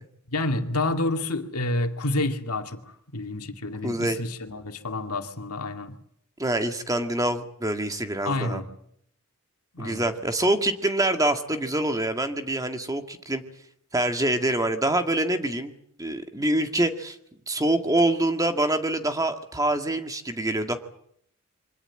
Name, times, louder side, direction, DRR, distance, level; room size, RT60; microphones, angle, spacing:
voice 1, 0.3-6.0 8.2-8.7 9.7-10.1, left 2 dB, 80° left, 6 dB, 2.4 m, -29 dB
voice 2, 3.8-4.2 6.4-8.6 9.8-13.4 13.9-15.7 16.0-17.2 17.5-20.8, right 1 dB, 15° right, 7 dB, 1.9 m, -25 dB
24.5 x 17.0 x 9.8 m, 0.68 s
head